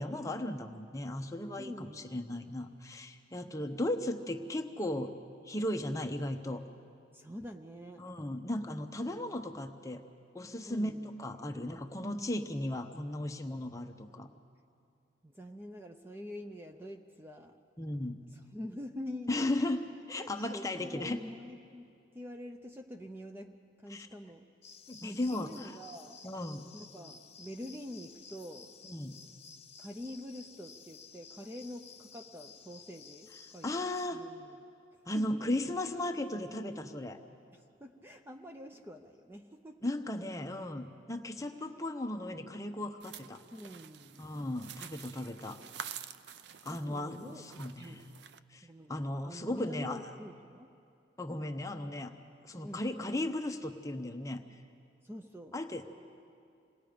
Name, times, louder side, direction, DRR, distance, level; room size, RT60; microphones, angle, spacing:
voice 1, 0.0-5.1 5.4-6.6 8.0-10.0 10.3-10.9 11.2-14.3 17.8-18.2 19.3-19.8 20.1-21.2 23.9-24.1 24.9-25.8 26.2-26.7 28.8-29.2 33.6-34.2 35.1-37.2 39.8-43.4 44.2-45.6 46.6-48.1 48.5-50.0 51.2-52.1 52.4-54.4 55.5-55.8, left 1 dB, 20° left, 5 dB, 0.8 m, -36 dB
voice 2, 1.6-2.2 7.1-8.1 10.6-11.1 15.2-17.6 18.3-19.3 20.1-21.9 22.1-24.5 25.0-26.2 26.7-28.8 29.8-33.7 34.1-34.6 34.9-35.4 37.5-39.9 43.5-44.2 46.4-48.1 48.6-50.8 52.6-52.9 55.0-55.6, left 1 dB, 10° right, 4 dB, 0.5 m, -46 dB
sound 1, 24.6-34.1, left 6 dB, 35° left, 1.5 m, -54 dB
sound 2, 43.0-48.4, right 8 dB, 65° right, 0.5 m, -48 dB
27.0 x 19.0 x 5.1 m, 2.5 s
head